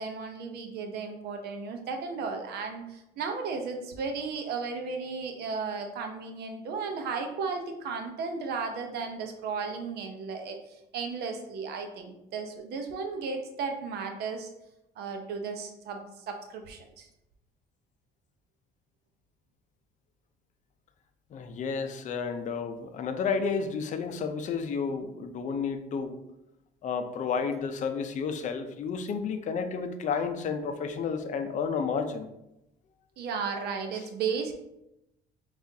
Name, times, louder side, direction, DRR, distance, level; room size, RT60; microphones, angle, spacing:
voice 1, 0.0-14.5 15.0-17.1 33.2-34.5, right 5 dB, 70° right, 4 dB, 0.6 m, -35 dB
voice 2, 21.3-26.2 26.8-32.3, left 5 dB, 45° left, 8 dB, 0.5 m, -31 dB
5.7 x 2.4 x 2.7 m, 0.87 s
cardioid pair, 110°, 17 cm